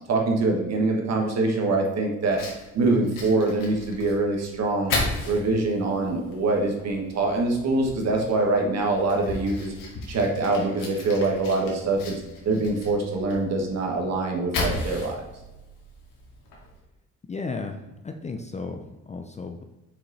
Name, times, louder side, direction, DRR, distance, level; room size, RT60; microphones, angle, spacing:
voice 1, 0.1-2.4 2.7-4.9 5.2-9.7 10.1-15.2, right 2 dB, 55° right, 1 dB, 1.5 m, -24 dB
Fire, 2.2-16.8, left 2 dB, 80° left, 1.8 m, -36 dB
voice 2, 17.3-17.8 18.0-19.6, left 3 dB, 20° left, 5 dB, 0.4 m, -34 dB
5.9 x 5.0 x 4.0 m, 1.1 s
cardioid pair, 135°, 32 cm